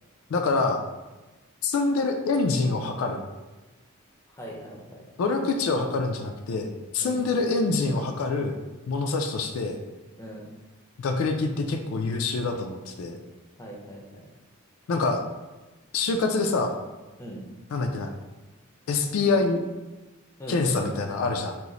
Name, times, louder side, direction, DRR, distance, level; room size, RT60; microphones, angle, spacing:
voice 1, 0.3-0.8 1.6-3.2 5.2-8.6 8.9-9.8 11.0-13.2 14.9-15.2 15.9-16.7 17.7-18.1 18.9-19.6 20.5-21.6, left 3 dB, 70° left, 4 dB, 0.3 m, -25 dB
voice 2, 4.4-5.0 7.0-7.2 10.2-10.4 13.6-14.3 17.2-17.4 20.4-20.9, equal, 15° left, -2 dB, 0.5 m, -39 dB
2.9 x 2.0 x 3.7 m, 1.1 s
head